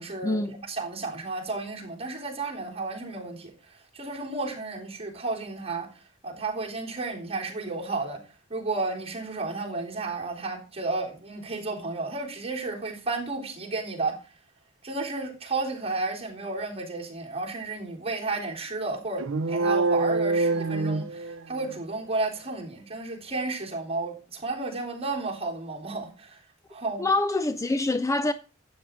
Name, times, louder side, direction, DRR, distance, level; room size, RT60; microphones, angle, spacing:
voice 1, 0.0-5.9 6.2-8.2 8.5-14.2 14.8-26.4 26.7-27.1, right 3 dB, 30° right, 3.5 m, -32 dB
sound 1, 19.2-21.7, right 3 dB, 65° right, 0.6 m, -25 dB
voice 2, 27.0-28.3, left 2 dB, 15° left, 0.5 m, -25 dB
12.0 x 8.8 x 3.7 m
head